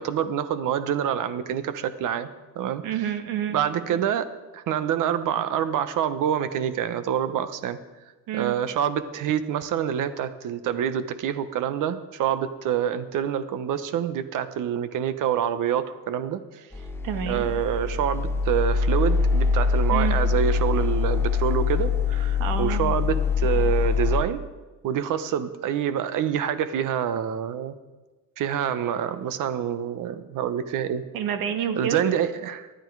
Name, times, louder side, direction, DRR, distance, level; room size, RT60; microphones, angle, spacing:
voice 1, 0.0-2.3 2.5-2.8 3.5-4.3 4.5-7.8 8.3-16.7 17.3-24.4 24.8-27.7 28.4-31.0 31.8-32.7, right 9 dB, 65° right, 12 dB, 1.2 m, -26 dB
voice 2, 2.8-3.6 8.3-8.6 17.0-17.5 19.9-20.2 22.4-23.0 31.1-32.0, right 9 dB, 85° right, 7 dB, 1.9 m, -28 dB
sound 1, 16.7-24.2, left 5 dB, 5° left, 0.8 m, -24 dB
19.5 x 12.0 x 4.8 m, 1.2 s
cardioid pair, 135°, 34 cm